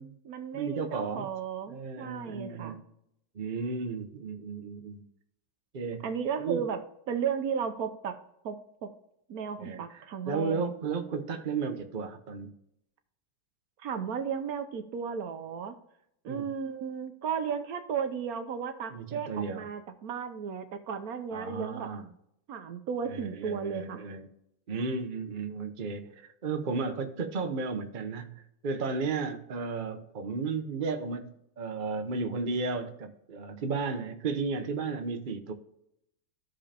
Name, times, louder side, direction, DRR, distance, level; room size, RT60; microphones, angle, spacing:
voice 1, 0.0-2.8 6.0-6.8 7.1-8.2 8.4-8.6 8.8-8.9 9.3-10.7 13.8-15.8 16.2-22.1 22.5-24.0, right 7 dB, 65° right, 0.9 m, -34 dB
voice 2, 0.5-1.3 1.7-2.8 3.3-5.0 5.7-6.0 6.4-6.7 9.6-12.5 16.3-16.5 18.9-19.7 21.3-22.0 23.1-24.3 24.7-35.5, right 4 dB, 80° right, 0.4 m, -34 dB
14.5 x 5.1 x 2.8 m
omnidirectional pair, 2.1 m